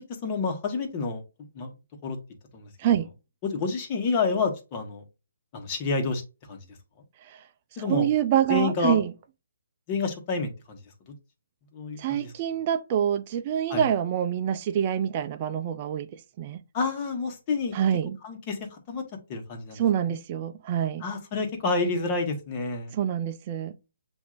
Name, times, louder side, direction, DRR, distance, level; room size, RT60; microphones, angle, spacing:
voice 1, 0.2-1.2 1.5-1.7 2.0-2.2 2.5-2.7 3.4-5.0 5.5-6.2 6.5-6.6 7.8-8.1 8.5-9.0 9.9-10.8 11.7-12.3 13.7-13.9 16.7-17.7 18.2-19.0 19.3-19.8 20.1-20.2 21.0-22.9, left 4 dB, 30° left, 1.3 m, -29 dB
voice 2, 7.8-9.1 12.0-16.6 17.7-18.2 19.7-21.0 22.9-23.7, right 10 dB, 35° right, 0.4 m, -26 dB
7.1 x 2.7 x 2.4 m
hypercardioid pair, 145°, 0 cm